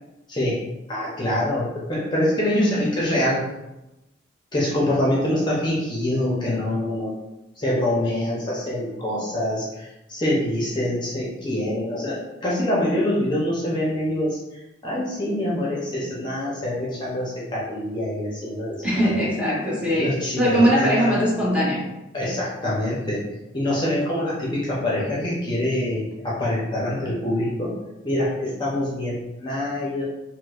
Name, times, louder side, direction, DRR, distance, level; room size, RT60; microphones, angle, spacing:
voice 1, 0.9-3.4 4.5-7.1 7.6-14.4 14.8-19.2 19.9-21.2 22.1-23.2 23.5-27.8 28.0-30.0, left 1 dB, 25° left, -6 dB, 0.6 m, -25 dB
voice 2, 2.5-2.8 18.8-21.9, equal, 5° right, -7 dB, 0.8 m, -21 dB
4.3 x 2.1 x 2.3 m, 0.96 s
head